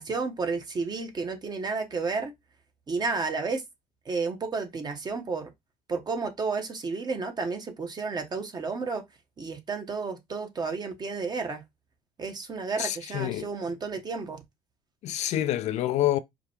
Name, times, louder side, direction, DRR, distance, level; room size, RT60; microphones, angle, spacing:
voice 1, 0.0-2.3 2.9-3.6 4.0-5.5 5.9-9.0 9.4-11.6 12.2-14.4, right 4 dB, 35° right, 1.1 m, -31 dB
voice 2, 12.8-13.5 15.0-16.2, left 13 dB, 60° left, 0.4 m, -27 dB
4.8 x 2.2 x 2.9 m
supercardioid pair, 85°, 13 cm